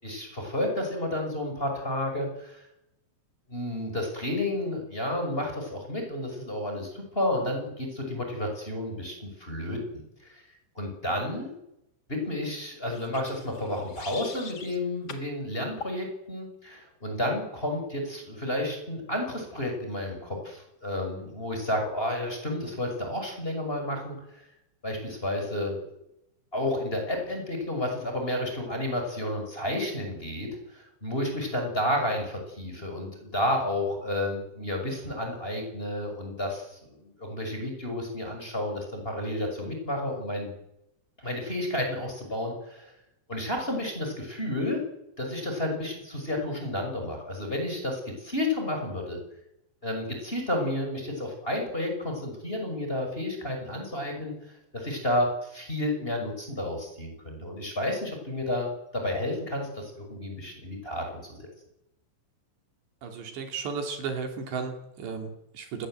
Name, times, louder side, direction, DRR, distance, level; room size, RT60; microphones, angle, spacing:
voice 1, 0.0-2.6 3.5-10.4 10.7-11.5 12.1-24.2 24.8-25.8 26.5-40.5 41.2-42.9 43.3-44.8 45.2-49.2 49.8-61.5, left 1 dB, 10° left, 3 dB, 5.9 m, -31 dB
sound 1, 12.9-14.8 15.1-15.3 15.8-16.0, left 4 dB, 70° left, 0.9 m, -42 dB
voice 2, 63.0-65.9, right 5 dB, 70° right, 4 dB, 5.1 m, -34 dB
27.5 x 21.0 x 7.9 m, 0.86 s
omnidirectional pair, 5.3 m